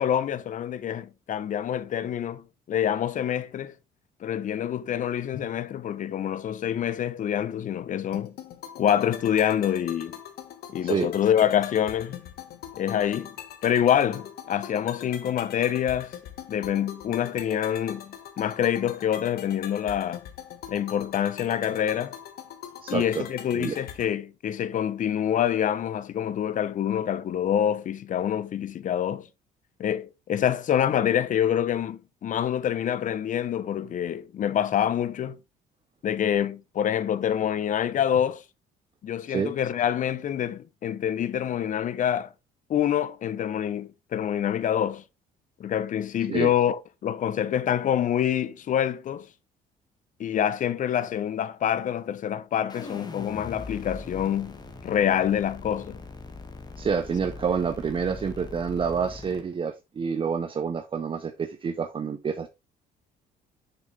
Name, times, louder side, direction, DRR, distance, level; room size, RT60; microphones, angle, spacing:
voice 1, 0.0-3.7 4.2-8.3 8.8-10.2 10.7-12.2 12.8-13.4 13.6-16.1 16.5-20.2 20.7-22.2 22.9-29.3 29.8-35.4 36.0-38.4 39.0-42.3 42.7-45.0 45.6-49.3 50.2-56.0, left 9 dB, 50° left, 0.9 m, -26 dB
sound 1, 8.1-24.1, left 9 dB, 70° left, 1.6 m, -42 dB
voice 2, 22.8-23.2 23.5-23.8 39.3-39.5 46.3-46.5 56.8-62.5, right 6 dB, 30° right, 0.8 m, -28 dB
sound 2, 52.7-59.4, left 3 dB, 25° left, 2.0 m, -41 dB
6.9 x 6.5 x 3.4 m
cardioid pair, 110°, 17 cm